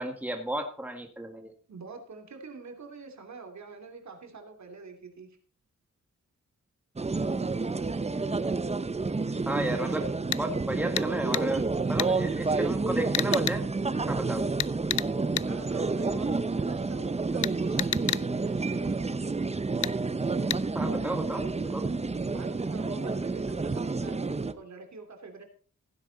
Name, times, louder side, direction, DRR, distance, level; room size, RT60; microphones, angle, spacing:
voice 1, 0.0-1.5 9.5-10.1 10.4-11.6 11.9-13.7 14.1-14.5 20.7-21.8, right 1 dB, 5° right, 4 dB, 1.9 m, -33 dB
voice 2, 1.7-5.3 9.6-10.1 10.9-11.5 12.5-12.6 15.4-19.1 22.2-25.4, right 4 dB, 65° right, 5 dB, 2.9 m, -45 dB
sound 1, 7.0-24.5, right 3 dB, 20° right, 0.8 m, -29 dB
sound 2, 10.3-10.4 11.0-11.1 11.3-11.5 12.0-12.1 13.1-13.6 14.6-15.1 15.4-15.5 17.4-18.2 19.8-20.0 20.5-20.6, left 12 dB, 70° left, 0.5 m, -29 dB
15.5 x 9.8 x 4.0 m, 0.41 s
wide cardioid pair, 105°, 31 cm